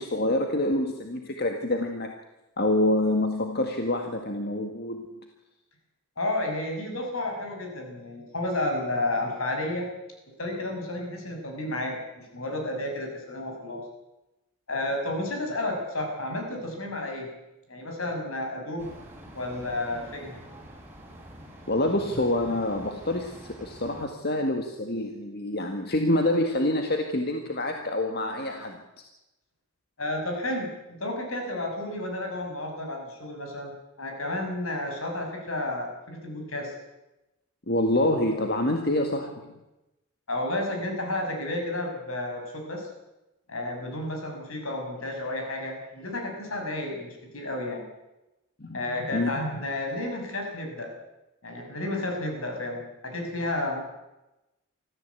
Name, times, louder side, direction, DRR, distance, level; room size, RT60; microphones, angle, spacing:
voice 1, 0.0-2.1 2.6-5.2 21.7-28.8 37.7-39.6 48.6-48.8 49.1-49.3, left 1 dB, 50° left, 4 dB, 1.8 m, -26 dB
voice 2, 6.2-9.9 10.4-13.8 14.7-17.3 17.7-18.9 19.3-20.4 30.0-33.7 34.0-36.7 40.3-42.9 43.5-47.8 48.7-50.9 51.4-53.8, left 1 dB, 75° left, 2 dB, 6.4 m, -31 dB
sound 1, 18.8-24.0, equal, 10° right, 4.6 m, -46 dB
25.0 x 14.5 x 8.3 m, 0.97 s
head